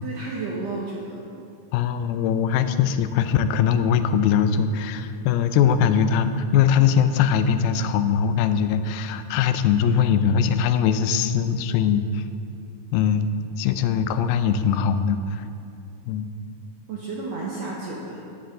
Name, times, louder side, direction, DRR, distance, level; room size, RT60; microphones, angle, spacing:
voice 1, 0.0-1.2 16.9-18.3, right 3 dB, 75° right, -4 dB, 1.5 m, -32 dB
voice 2, 1.7-12.2 12.9-13.3 13.6-15.4 16.1-16.3, left 7 dB, 90° left, 10 dB, 2.4 m, -21 dB
10.0 x 9.8 x 3.9 m, 2.5 s
omnidirectional pair, 4.2 m